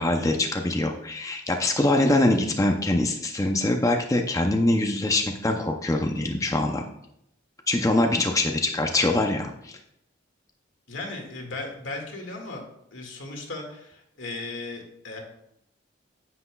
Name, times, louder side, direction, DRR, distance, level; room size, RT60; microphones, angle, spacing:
voice 1, 0.0-6.8 7.7-9.8, left 2 dB, 15° left, 3 dB, 0.5 m, -23 dB
voice 2, 10.9-12.6 12.9-15.2, left 2 dB, 90° left, 1 dB, 1.9 m, -36 dB
9.6 x 7.7 x 2.3 m, 0.78 s
head